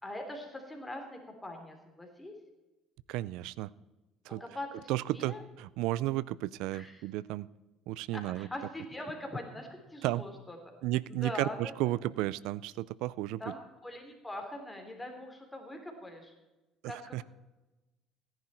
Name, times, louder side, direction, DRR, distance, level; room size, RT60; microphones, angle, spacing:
voice 1, 0.0-2.3 4.4-5.4 6.7-7.0 8.1-10.6 11.1-11.9 13.4-16.3 16.8-17.2, left 1 dB, 10° left, 3 dB, 3.5 m, -42 dB
voice 2, 3.1-3.7 4.3-4.4 4.9-7.5 7.9-8.5 10.0-10.2 10.8-13.4 16.8-17.2, right 16 dB, 80° right, 21 dB, 0.4 m, -33 dB
16.5 x 10.5 x 4.4 m, 1.1 s
supercardioid pair, 85°, 0 cm